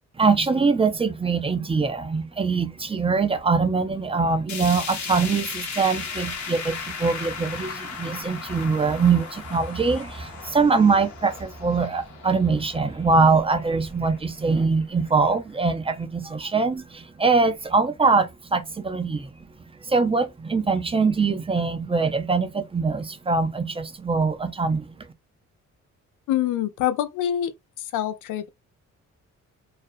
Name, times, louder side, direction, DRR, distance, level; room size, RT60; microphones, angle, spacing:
voice 1, 0.2-19.4 19.8-25.0, right 4 dB, 20° right, 0.4 m, -23 dB
sound 1, 4.5-14.6 15.0-15.1 15.5-15.6 16.5-16.6, left 6 dB, 65° left, 0.8 m, -36 dB
voice 2, 26.3-27.5 27.9-28.5, left 11 dB, 80° left, 0.5 m, -25 dB
2.4 x 2.0 x 2.5 m
cardioid pair, 90°, 30 cm